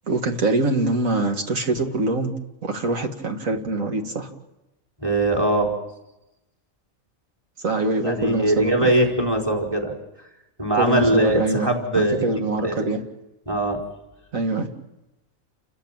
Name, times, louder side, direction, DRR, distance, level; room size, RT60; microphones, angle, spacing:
voice 1, 0.1-2.3 2.6-4.3 7.6-8.9 10.7-13.0 14.3-14.7, right 2 dB, 70° right, 4 dB, 2.5 m, -24 dB
voice 2, 5.0-5.7 8.0-9.9 10.6-12.2 12.6-12.7 13.5-13.8, right 1 dB, 15° right, 1 dB, 4.4 m, -21 dB
29.5 x 14.5 x 8.9 m, 0.95 s
omnidirectional pair, 1.4 m